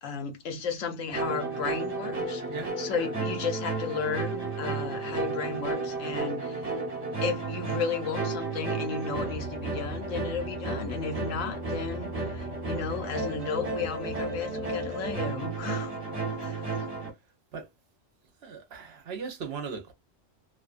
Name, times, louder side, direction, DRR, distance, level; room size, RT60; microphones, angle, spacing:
voice 1, 0.0-2.4 2.8-6.6 7.2-15.9 16.4-16.8, left 5 dB, 85° left, 1.1 m, -34 dB
sound 1, 1.1-17.1, right 3 dB, 30° right, 1.1 m, -33 dB
voice 2, 18.4-19.9, right 5 dB, 60° right, 0.8 m, -38 dB
2.6 x 2.3 x 2.4 m
omnidirectional pair, 1.3 m